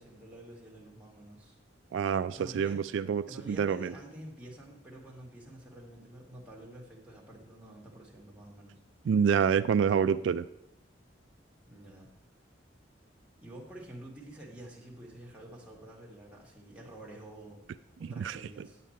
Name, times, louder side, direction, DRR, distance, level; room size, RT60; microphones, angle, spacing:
voice 1, 0.0-1.6 2.3-2.9 3.3-8.8 11.7-12.1 13.4-18.8, right 1 dB, 5° right, -3 dB, 2.0 m, -49 dB
voice 2, 1.9-3.9 9.1-10.5 18.0-18.4, right 7 dB, 75° right, 13 dB, 0.3 m, -27 dB
9.2 x 8.2 x 4.3 m, 0.79 s
head